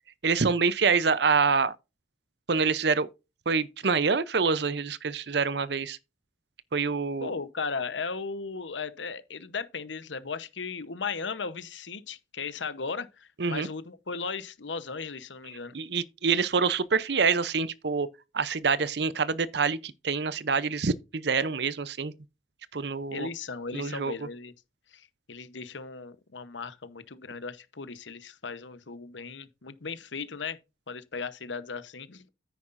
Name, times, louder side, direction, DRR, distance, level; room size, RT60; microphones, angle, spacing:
voice 1, 0.2-1.8 2.5-3.1 3.5-6.0 6.7-7.3 13.4-13.7 15.7-18.1 18.3-22.1 22.7-23.3 23.7-24.1, right 5 dB, 65° right, 0.7 m, -26 dB
voice 2, 7.2-15.7 23.1-24.5 24.9-30.6 30.9-32.2, left 5 dB, 85° left, 1.0 m, -36 dB
9.7 x 9.3 x 2.6 m
head